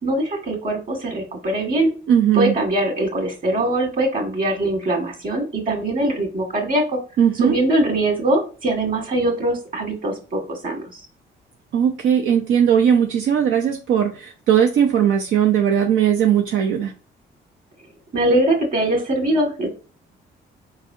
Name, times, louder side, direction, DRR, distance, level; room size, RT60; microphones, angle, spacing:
voice 1, 0.0-1.9 2.3-7.0 7.4-11.0 18.1-19.7, right 1 dB, 45° right, 2 dB, 2.1 m, -22 dB
voice 2, 2.1-2.6 7.2-7.6 11.7-16.9, right 8 dB, 80° right, 2 dB, 0.7 m, -18 dB
4.7 x 4.0 x 2.8 m, 0.35 s
cardioid pair, 90°, 20 cm